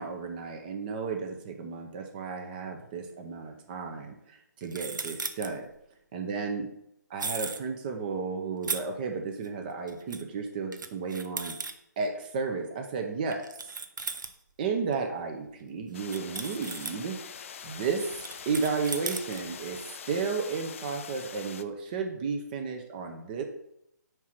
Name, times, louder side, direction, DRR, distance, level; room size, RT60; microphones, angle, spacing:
voice 1, 0.0-5.7 6.1-6.7 7.1-11.5 12.0-13.5 14.6-17.2 17.6-18.2 18.5-19.8 20.1-23.4, right 5 dB, 30° right, 4 dB, 0.7 m, -33 dB
Corking Uncorking, 2.8-2.9 4.6-5.5 7.2-7.6 8.6-8.8 9.4-9.5 9.9-10.2 10.7-11.7 13.3-14.4 14.9-15.0 15.5-15.6 16.0-17.0 18.1-19.7, right 4 dB, 90° right, 0.8 m, -36 dB
sound 1, 15.9-21.6, left 7 dB, 45° left, 0.4 m, -44 dB
4.8 x 4.6 x 5.8 m, 0.78 s
hypercardioid pair, 155°, 10 cm